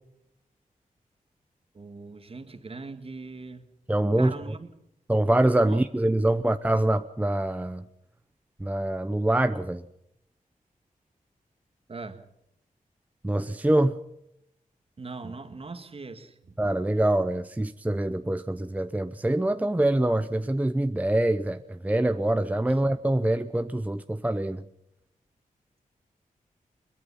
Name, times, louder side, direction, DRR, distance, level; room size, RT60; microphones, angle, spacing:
voice 1, 1.7-3.6 4.2-4.7 5.6-5.8 11.9-12.3 15.0-16.5, right 3 dB, 40° right, 1.9 m, -40 dB
voice 2, 3.9-4.3 5.1-7.8 8.6-9.9 13.2-14.0 16.6-24.6, right 1 dB, 10° right, 0.7 m, -25 dB
22.0 x 22.0 x 5.7 m
wide cardioid pair, 100°, 14 cm